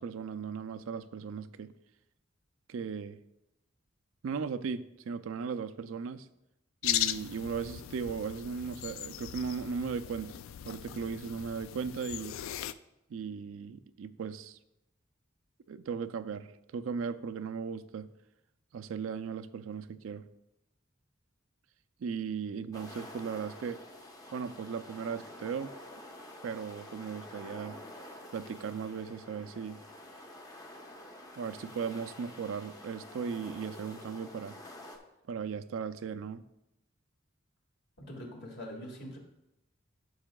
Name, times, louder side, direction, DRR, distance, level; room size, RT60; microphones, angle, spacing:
voice 1, 0.0-1.7 2.7-3.2 4.2-6.3 6.8-10.3 10.6-12.4 13.1-14.6 15.7-18.1 18.7-20.2 22.0-23.8 24.3-25.7 26.4-27.8 28.3-29.8 31.4-34.6 35.3-36.4, right 6 dB, 75° right, 11 dB, 0.4 m, -37 dB
sound 1, 6.8-12.7, left 12 dB, 75° left, 0.3 m, -37 dB
sound 2, 22.7-35.0, left 1 dB, 20° left, 0.8 m, -49 dB
voice 2, 38.0-39.2, equal, 60° left, 0 dB, 1.9 m, -43 dB
12.0 x 6.1 x 2.3 m, 0.88 s
head